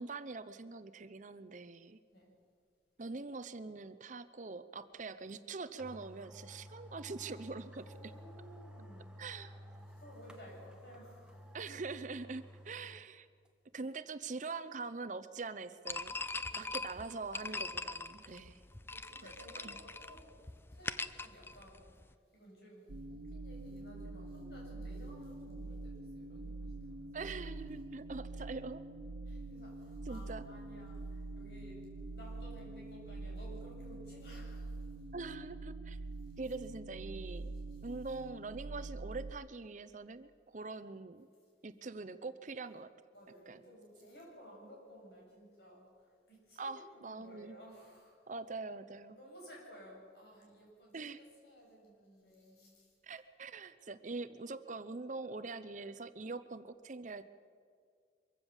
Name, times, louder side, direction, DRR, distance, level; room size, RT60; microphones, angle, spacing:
voice 1, 0.0-2.0 3.0-8.1 9.2-9.6 11.5-13.3 13.7-16.1 16.6-18.6 19.6-19.7 27.1-28.8 30.1-30.4 35.1-36.0 36.4-37.5 37.8-41.3 41.6-42.9 43.5-43.6 46.6-47.6 48.3-49.2 50.9-51.2 53.0-57.2, right 3 dB, 45° right, 12 dB, 0.7 m, -43 dB
sound 1, 5.3-5.4 5.8-13.1 13.5-13.6, equal, 5° right, 1.4 m, -53 dB
voice 2, 7.8-9.1 9.9-11.4 16.5-17.0 18.4-18.5 18.9-20.4 20.7-27.4 29.3-34.8 37.5-37.9 43.1-48.2 49.1-52.9, equal, 65° left, -2 dB, 8.0 m, -56 dB
sound 2, 15.9-22.1, left 3 dB, 15° left, 0.5 m, -42 dB
sound 3, 22.9-39.3, right 2 dB, 70° right, 0.8 m, -45 dB
23.5 x 15.5 x 7.2 m, 2.1 s
head